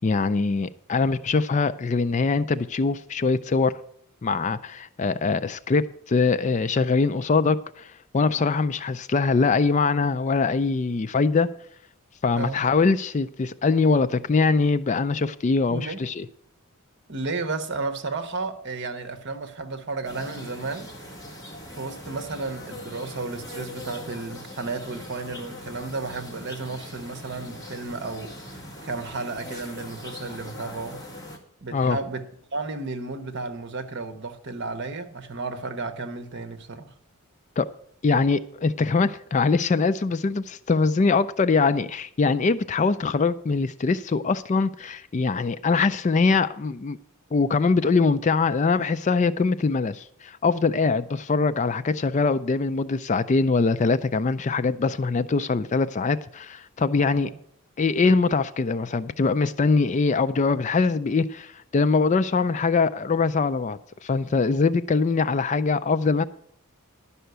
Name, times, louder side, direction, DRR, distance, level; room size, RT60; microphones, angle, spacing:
voice 1, 0.0-3.7 4.2-11.5 12.2-16.3 31.7-32.0 37.6-37.7 38.0-47.0 47.3-57.3 57.8-66.2, left 4 dB, 30° left, 0.3 m, -23 dB
voice 2, 12.4-12.7 15.7-16.0 17.1-20.9 21.7-31.0 31.6-36.9 57.1-57.4, right 3 dB, 50° right, 1.1 m, -33 dB
sound 1, 20.0-31.4, left 1 dB, 15° left, 1.8 m, -41 dB
11.0 x 5.6 x 8.0 m
head